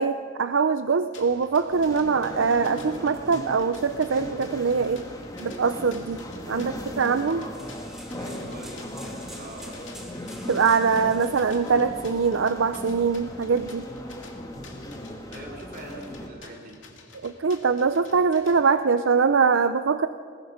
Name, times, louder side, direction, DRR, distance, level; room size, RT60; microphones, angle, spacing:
voice 1, 0.0-5.1 5.4-6.2 6.5-7.4 10.5-13.9 17.2-20.1, right 5 dB, 70° right, 10 dB, 0.5 m, -23 dB
sound 1, 1.1-18.6, left 4 dB, 65° left, 2.5 m, -50 dB
sound 2, 1.7-16.3, left 1 dB, 20° left, 2.0 m, -38 dB
sound 3, 6.9-12.3, equal, ahead, 3.1 m, -48 dB
voice 2, 8.2-9.9 15.3-16.8, right 1 dB, 50° right, -1 dB, 3.5 m, -43 dB
22.0 x 21.0 x 5.8 m, 2.1 s
head